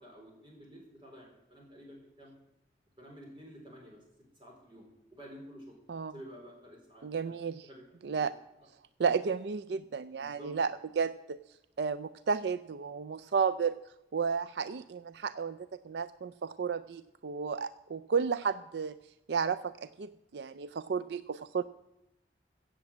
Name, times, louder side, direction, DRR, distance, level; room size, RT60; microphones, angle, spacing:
voice 1, 0.0-2.3 3.0-4.0 4.3-4.9 5.1-5.8 6.1-7.3 7.6-7.8 8.1-8.3 10.1-10.5, equal, 30° right, 0 dB, 4.1 m, -51 dB
voice 2, 7.0-7.7 8.0-8.3 9.0-11.4 11.8-13.8 14.1-19.0 19.3-21.6, right 6 dB, 75° right, 13 dB, 0.4 m, -33 dB
16.0 x 7.5 x 7.3 m, 0.89 s
head